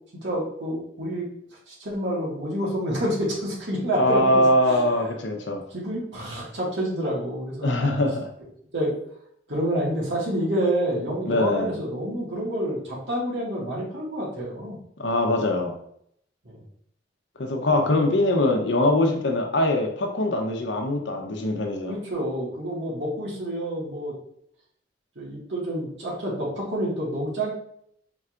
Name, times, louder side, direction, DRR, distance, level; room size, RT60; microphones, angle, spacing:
voice 1, 0.2-1.3 1.7-4.8 5.7-8.0 8.7-8.9 9.5-14.8 16.5-16.6 21.9-24.1 25.2-27.5, equal, 80° right, -5 dB, 1.7 m, -28 dB
voice 2, 3.9-5.6 7.6-8.3 11.2-11.7 15.0-15.8 17.4-21.9, left 1 dB, 80° left, 3 dB, 0.8 m, -22 dB
4.5 x 3.9 x 2.5 m, 0.69 s
head